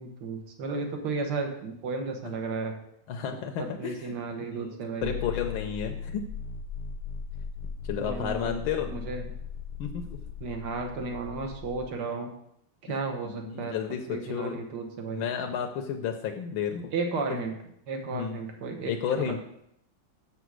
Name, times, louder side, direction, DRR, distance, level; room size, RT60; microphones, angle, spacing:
voice 1, 0.0-2.8 3.8-5.2 7.9-8.5 8.9-9.2 10.4-12.3 12.8-13.8 14.1-15.3 16.9-17.5 17.9-18.9 19.3-19.4, right 4 dB, 60° right, 4 dB, 1.8 m, -33 dB
voice 2, 3.1-4.1 4.5-4.8 5.0-6.3 7.8-8.9 9.8-10.2 12.9-13.0 13.2-14.6 15.1-16.9 18.0-18.4 18.8-19.4, left 7 dB, 85° left, 3 dB, 1.6 m, -32 dB
sound 1, 5.0-11.9, left 6 dB, 70° left, 1.1 m, -38 dB
7.1 x 7.0 x 6.2 m, 0.74 s
omnidirectional pair, 2.2 m